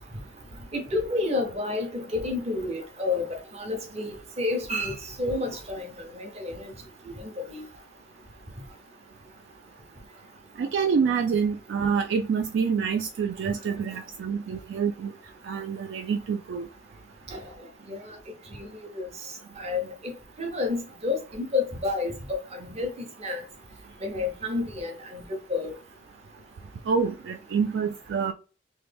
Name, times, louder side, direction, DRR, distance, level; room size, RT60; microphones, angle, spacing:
voice 1, 0.7-6.7 7.2-7.6 17.3-17.4 17.9-18.2 18.6-18.7 19.0-19.1 19.6-20.1 20.4-22.9 23.2-23.4 24.0-25.2 25.5-25.7, left 3 dB, 35° right, 0.8 m, -30 dB
voice 2, 10.6-15.1 15.4-16.7 26.9-28.3, right 6 dB, 65° right, 0.3 m, -27 dB
3.1 x 2.2 x 3.3 m
head